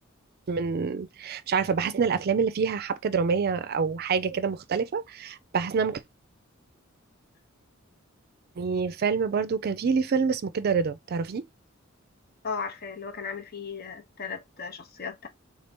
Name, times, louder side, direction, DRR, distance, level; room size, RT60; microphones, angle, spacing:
voice 1, 0.5-6.0 8.6-11.4, right 5 dB, 50° right, 0.4 m, -27 dB
voice 2, 12.4-15.3, left 5 dB, 50° left, 0.7 m, -36 dB
3.7 x 2.7 x 3.4 m
head